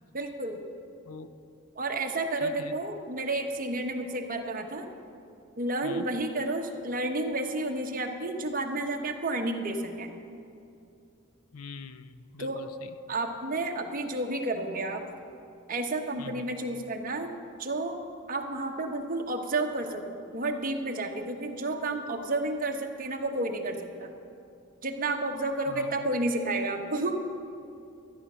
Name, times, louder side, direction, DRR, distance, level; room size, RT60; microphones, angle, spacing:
voice 1, 0.1-0.6 1.8-4.9 5.6-10.1 12.4-12.6 13.1-15.1 15.7-17.3 17.6-18.0 18.3-24.1 24.8-27.2, right 2 dB, 40° right, 3 dB, 1.1 m, -31 dB
voice 2, 2.4-2.8 5.8-6.1 11.5-12.9 16.2-16.5 25.7-26.1, left 5 dB, 80° left, 12 dB, 0.6 m, -44 dB
13.0 x 10.0 x 6.2 m, 2.6 s
head